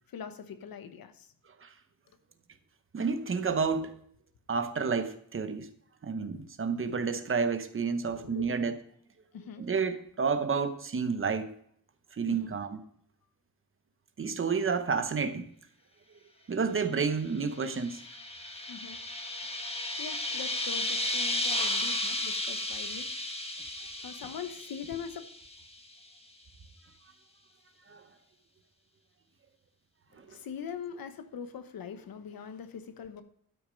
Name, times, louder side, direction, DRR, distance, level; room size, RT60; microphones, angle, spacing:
voice 1, 0.1-1.3 8.1-8.5 9.3-9.7 12.3-12.5 18.7-19.0 20.0-23.1 24.0-25.2 30.2-33.2, left 7 dB, 90° left, 1.1 m, -42 dB
voice 2, 2.9-4.0 4.5-5.7 6.0-8.7 9.6-11.5 12.1-12.8 14.2-15.5 16.5-18.0 27.9-28.0, right 5 dB, 35° right, 0.9 m, -30 dB
sound 1, 17.4-25.7, left 1 dB, 15° left, 1.2 m, -34 dB
12.0 x 6.4 x 5.2 m
wide cardioid pair, 165°, 34 cm